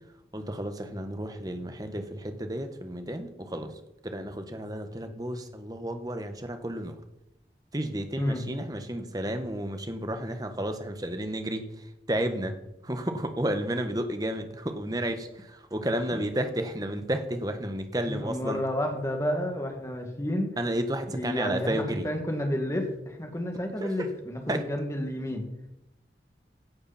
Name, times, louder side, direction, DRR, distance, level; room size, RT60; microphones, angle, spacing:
voice 1, 0.3-3.7 4.0-7.0 7.7-11.6 12.1-12.6 12.8-18.6 20.6-22.1 23.8-24.1 24.5-24.7, right 1 dB, 20° right, 7 dB, 1.4 m, -32 dB
voice 2, 18.1-20.6 21.1-25.5, equal, 15° left, 3 dB, 2.3 m, -30 dB
16.5 x 11.5 x 4.4 m, 0.86 s
head